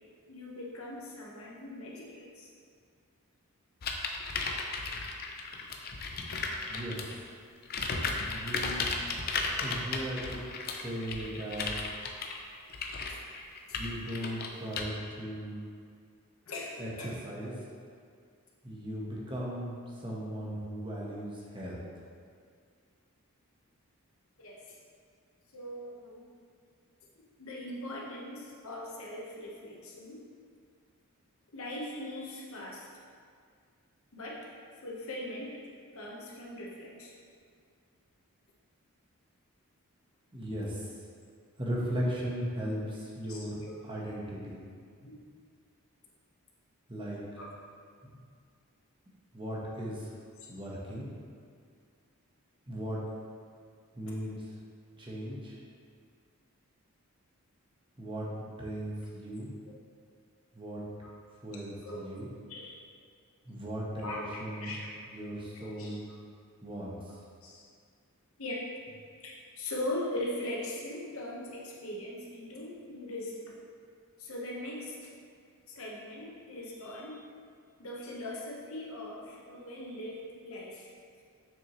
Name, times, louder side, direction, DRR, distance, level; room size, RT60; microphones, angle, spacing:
voice 1, 0.3-2.5 16.5-17.1 24.4-24.8 25.5-26.3 27.4-30.2 31.5-32.9 34.1-34.5 34.8-35.6 35.9-37.1 42.6-42.7 43.3-43.8 45.0-45.3 47.4-47.5 61.8-62.1 62.5-62.8 64.0-64.9 65.5-66.0 67.4-67.6 68.4-68.6 69.2-73.5 74.2-75.1 75.7-77.2 77.8-80.9, left 1 dB, 65° left, -3 dB, 1.2 m, -40 dB
sound 1, 3.8-7.2 7.6-14.8, left 4 dB, 45° left, 0.5 m, -35 dB
voice 2, 6.7-7.0 8.3-9.1 9.6-11.7 13.7-15.6 16.8-17.5 18.6-21.8 40.3-40.9 41.6-44.6 46.9-47.2 48.0-48.2 49.3-50.1 50.5-51.1 52.7-53.0 53.9-54.4 55.0-55.6 58.0-59.5 60.5-60.8 61.4-62.3 63.4-64.7 65.1-66.0 66.6-67.1, equal, 20° right, -5 dB, 1.1 m, -37 dB
7.1 x 6.2 x 3.1 m, 2.2 s
head